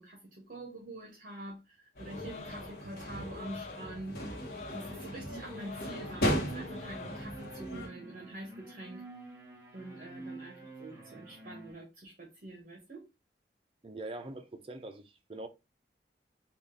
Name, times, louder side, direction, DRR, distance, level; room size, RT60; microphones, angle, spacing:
voice 1, 0.0-4.4 4.7-9.0 9.7-13.1, right 1 dB, 45° right, 0.9 m, -46 dB
sound 1, 2.0-7.9, equal, 55° left, 1.0 m, -37 dB
sound 2, 2.0-7.2, left 5 dB, 40° left, 0.6 m, -47 dB
sound 3, 5.3-11.7, right 2 dB, 15° right, 0.9 m, -48 dB
voice 2, 13.8-15.5, right 2 dB, 30° right, 0.5 m, -43 dB
3.6 x 2.4 x 3.7 m
head